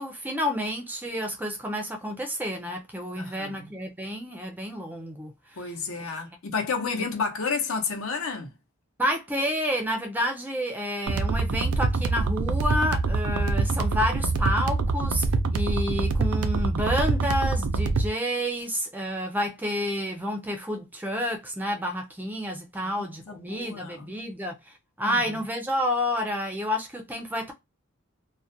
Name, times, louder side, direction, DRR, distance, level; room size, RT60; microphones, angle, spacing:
voice 1, 0.0-5.7 9.0-15.3 15.5-27.5, equal, 10° right, 0.3 m, -29 dB
voice 2, 3.2-3.7 5.6-8.5 22.8-24.1 25.0-25.4, left 5 dB, 70° left, 0.7 m, -31 dB
sound 1, 11.1-18.1, right 3 dB, 80° right, 0.4 m, -25 dB
2.3 x 2.1 x 2.6 m
head